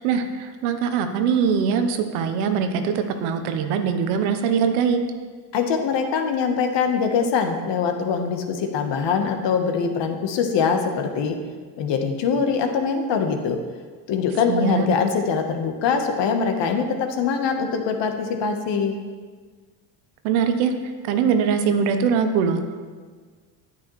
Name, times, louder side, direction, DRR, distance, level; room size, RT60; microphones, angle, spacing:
voice 1, 0.0-5.0 14.5-14.9 20.2-20.7 21.0-22.6, right 6 dB, 85° right, 7 dB, 0.9 m, -22 dB
voice 2, 5.5-11.4 11.8-13.6 14.1-19.0, left 6 dB, 60° left, 5 dB, 1.2 m, -23 dB
9.2 x 8.7 x 3.1 m, 1.5 s
supercardioid pair, 90°, 49 cm